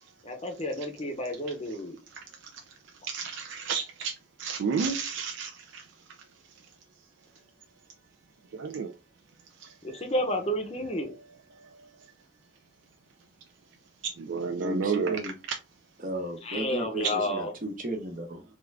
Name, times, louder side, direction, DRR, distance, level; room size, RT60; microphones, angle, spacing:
voice 1, 0.2-2.0 9.8-11.2 16.4-17.5, equal, 30° left, 0.6 m, -31 dB
voice 2, 3.1-4.1 4.4-5.9 8.5-8.9 9.6-9.7 14.0-15.2 17.0-17.1, right 5 dB, 70° right, 0.4 m, -31 dB
voice 3, 14.6-15.3 16.0-18.4, right 1 dB, 40° right, 0.8 m, -34 dB
3.5 x 2.4 x 3.2 m
head